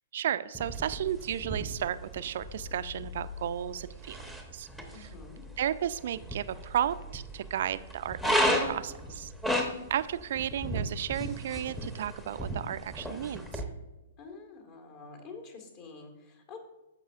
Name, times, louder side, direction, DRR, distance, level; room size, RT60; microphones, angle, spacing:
voice 1, 0.1-4.2 4.5-4.7 4.9-5.1 5.6-9.3 9.6-13.6, right 10 dB, 55° right, 14 dB, 0.4 m, -33 dB
sound 1, 0.5-13.6, equal, 5° left, 0.9 m, -35 dB
voice 2, 4.9-5.4 14.2-16.6, left 4 dB, 40° left, 4 dB, 1.7 m, -47 dB
14.0 x 5.4 x 2.4 m, 1.0 s
figure-of-eight pair, 115°, 0 cm